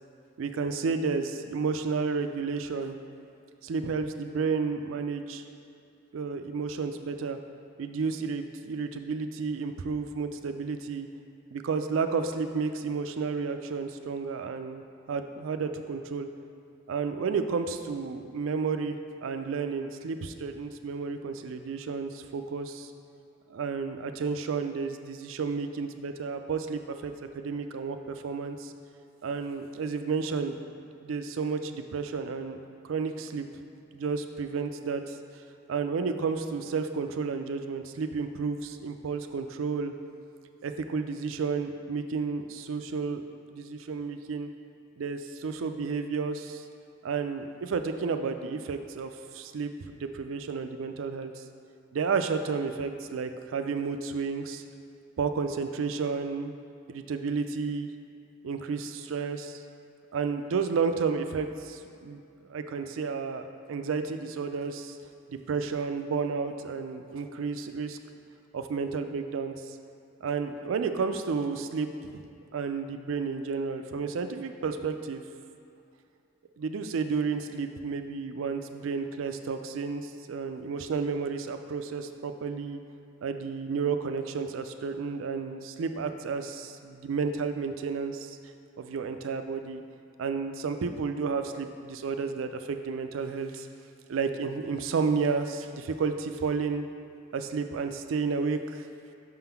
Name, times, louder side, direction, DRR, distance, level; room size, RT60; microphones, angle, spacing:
voice 1, 0.4-3.0 3.6-5.4 6.1-7.4 7.8-11.1 11.5-14.8 15.1-16.3 16.9-22.9 23.5-28.7 29.2-30.6 31.0-32.6 32.8-33.5 33.9-35.2 35.7-39.9 40.6-43.2 43.5-44.5 45.0-46.6 47.0-51.4 51.9-54.6 55.2-56.5 56.9-57.9 58.4-59.6 60.1-62.2 62.5-65.0 65.3-68.0 68.5-69.8 70.2-72.3 72.5-75.2 76.6-82.8 83.2-88.4 88.8-89.8 90.2-93.7 94.1-96.8 97.3-98.9, right 5 dB, 80° right, 8 dB, 0.4 m, -31 dB
5.8 x 3.8 x 5.7 m, 2.5 s
head